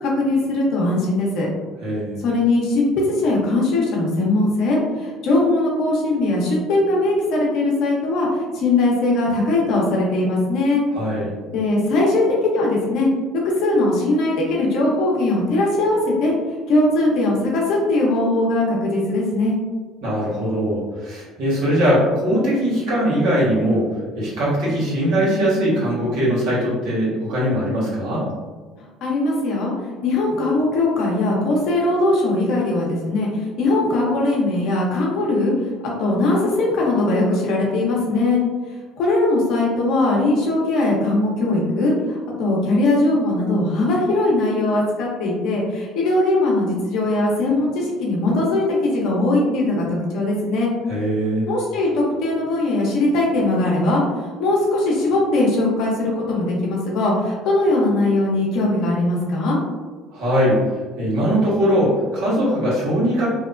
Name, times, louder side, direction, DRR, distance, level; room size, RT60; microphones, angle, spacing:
voice 1, 0.0-1.5 2.2-10.8 11.5-13.1 13.4-16.3 16.7-19.5 29.0-29.7 30.0-35.5 36.0-38.4 39.0-49.8 50.1-50.7 51.5-54.0 54.4-59.6, left 2 dB, 65° left, -3 dB, 0.8 m, -20 dB
voice 2, 1.8-2.2 10.9-11.3 20.0-23.9 24.1-28.3 50.9-51.5 60.1-60.6 61.0-63.3, equal, 75° right, -7 dB, 1.2 m, -20 dB
2.8 x 2.1 x 2.5 m, 1.4 s
supercardioid pair, 75°, 0 cm